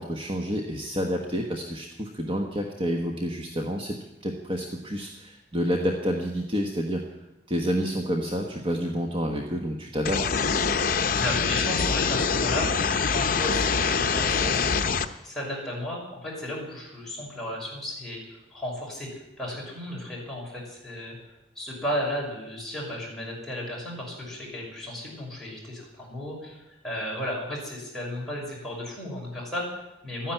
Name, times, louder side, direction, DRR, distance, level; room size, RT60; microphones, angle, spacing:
voice 1, 0.0-4.0 4.2-7.0 7.5-10.2, equal, 30° right, 2 dB, 1.3 m, -29 dB
sound 1, 10.0-15.0, left 5 dB, 50° left, 0.8 m, -24 dB
voice 2, 11.1-12.7 13.1-14.6 15.2-19.1 19.4-21.2 21.5-30.3, equal, ahead, -5 dB, 6.1 m, -34 dB
13.0 x 10.0 x 9.1 m, 0.96 s
head